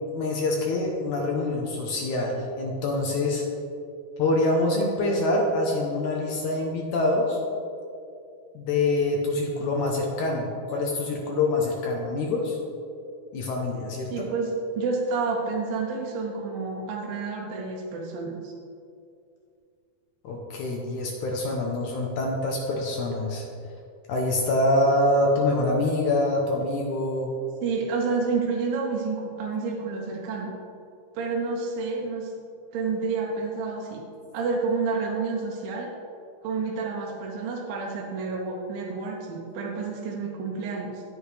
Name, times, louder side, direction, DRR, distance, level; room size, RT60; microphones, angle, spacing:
voice 1, 0.1-3.4 4.2-7.4 8.5-12.6 13.3-14.2 20.2-23.4 24.1-27.3, left 2 dB, 70° left, 0 dB, 1.9 m, -25 dB
voice 2, 14.1-18.5 27.6-30.5 31.1-32.3 32.7-34.0 34.3-35.9 36.4-41.0, right 4 dB, 75° right, -2 dB, 2.6 m, -29 dB
12.5 x 8.1 x 3.3 m, 2.5 s
omnidirectional pair, 4.4 m